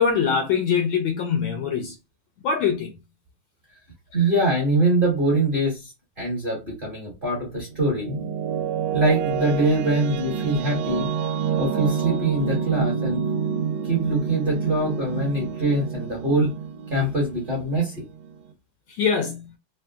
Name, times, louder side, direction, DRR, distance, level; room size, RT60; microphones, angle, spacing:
voice 1, 0.0-1.9 2.4-2.9 18.9-19.5, left 6 dB, 75° left, 1.2 m, -23 dB
voice 2, 4.1-8.2 8.9-11.1 11.6-13.2 13.8-16.5 16.9-18.0, right 2 dB, 30° right, 1.1 m, -23 dB
sound 1, 7.5-18.5, right 7 dB, 80° right, 1.4 m, -28 dB
3.8 x 2.2 x 2.2 m
omnidirectional pair, 2.4 m